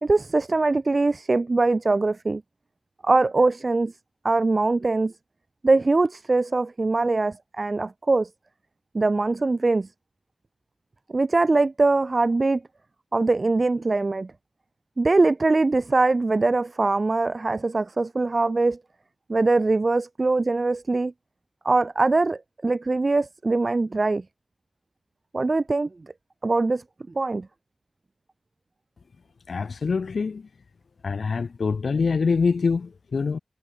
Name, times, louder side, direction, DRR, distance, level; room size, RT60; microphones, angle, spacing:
voice 1, 0.0-2.4 3.0-3.9 4.2-5.1 5.6-8.3 8.9-9.9 11.1-12.6 13.1-14.3 15.0-18.8 19.3-21.1 21.6-24.2 25.3-25.9 26.4-26.8 27.1-27.5, right 3 dB, 40° right, 1.2 m, -22 dB
voice 2, 29.5-30.5 31.0-33.4, left 5 dB, 70° left, 2.1 m, -25 dB
wide cardioid pair, 85°, 0 cm